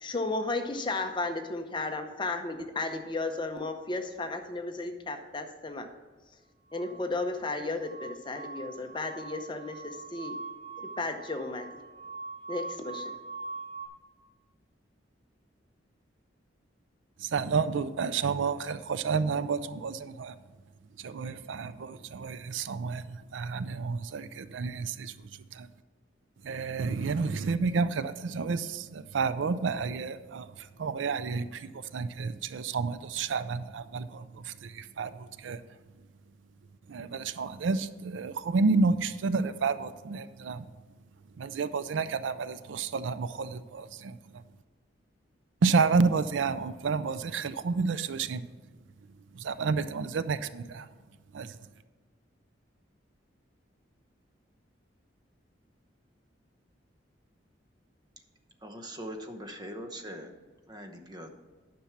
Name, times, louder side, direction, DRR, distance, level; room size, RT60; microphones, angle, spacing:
voice 1, 0.0-5.9 6.7-10.4 10.8-11.7 12.5-13.1, left 3 dB, 25° left, 6 dB, 0.7 m, -34 dB
sound 1, 6.7-13.9, right 4 dB, 40° right, 3.3 m, -43 dB
voice 2, 17.2-20.4 21.0-25.7 26.4-35.6 36.9-40.7 41.4-44.4 45.6-48.5 49.3-50.9 51.3-51.6, right 4 dB, 80° right, 14 dB, 0.4 m, -30 dB
voice 3, 58.6-60.3 60.7-61.3, equal, 20° right, 5 dB, 0.9 m, -41 dB
10.0 x 6.1 x 5.8 m, 1.3 s
head